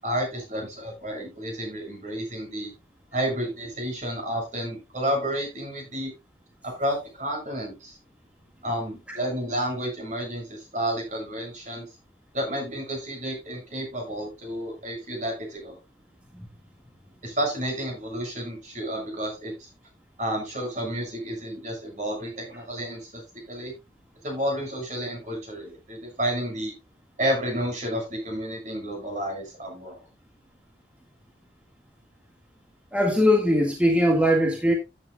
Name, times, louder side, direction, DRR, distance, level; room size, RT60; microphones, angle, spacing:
voice 1, 0.0-2.7 3.1-6.1 6.6-8.0 8.6-11.9 12.3-15.8 17.2-19.7 20.2-23.7 24.2-26.7 27.2-30.0, equal, 40° right, 7.2 m, -31 dB
voice 2, 32.9-34.7, equal, 5° right, 1.8 m, -21 dB
14.0 x 10.0 x 2.3 m
head